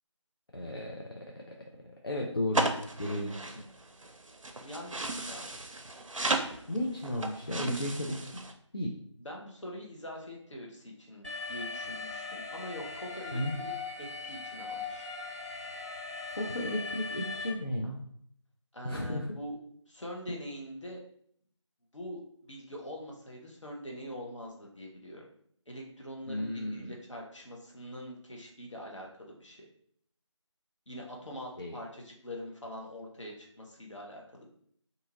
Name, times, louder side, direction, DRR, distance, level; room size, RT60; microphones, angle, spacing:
voice 1, 0.5-1.1 2.0-2.7 3.0-3.6 6.7-8.4 8.7-9.0 13.3-13.5 16.3-18.0 18.8-19.3 26.3-26.9 31.6-31.8, left 1 dB, 50° left, -1 dB, 0.4 m, -34 dB
sound 1, 2.5-8.5, right 2 dB, 90° right, 0.5 m, -35 dB
voice 2, 4.6-5.5 9.2-13.4 14.0-15.1 18.7-19.6 19.9-21.0 21.9-25.3 25.7-29.7 30.9-34.5, equal, 70° left, -1 dB, 1.0 m, -44 dB
Alarm, 11.2-17.5, left 4 dB, 15° right, 0.7 m, -39 dB
2.7 x 2.5 x 2.8 m, 0.64 s
figure-of-eight pair, 170°, 16 cm